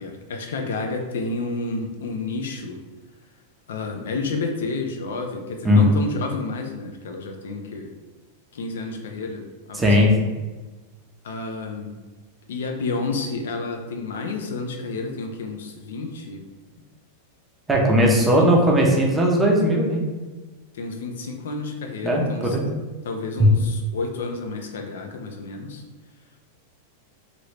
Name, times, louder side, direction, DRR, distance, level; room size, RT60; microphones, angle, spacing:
voice 1, 0.0-2.8 3.7-7.9 8.5-10.1 11.2-11.9 12.5-16.4 18.0-18.8 20.7-22.6 23.0-25.8, left 3 dB, 85° left, 4 dB, 0.5 m, -30 dB
voice 2, 9.8-10.2 17.7-20.0 22.0-22.7 23.4-23.5, equal, 10° right, -1 dB, 0.6 m, -18 dB
3.0 x 2.5 x 3.2 m, 1.2 s
supercardioid pair, 145°, 0 cm